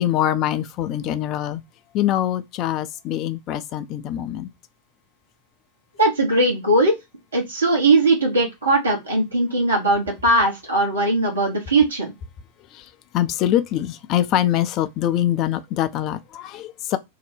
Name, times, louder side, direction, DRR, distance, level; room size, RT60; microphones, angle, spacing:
voice 1, 0.0-1.6 1.9-4.5 12.7-17.0, left 12 dB, 35° left, 0.4 m, -24 dB
voice 2, 6.0-7.0 7.3-12.1, right 2 dB, 75° right, 1.0 m, -19 dB
2.7 x 2.1 x 3.2 m
figure-of-eight pair, 90°, 0 cm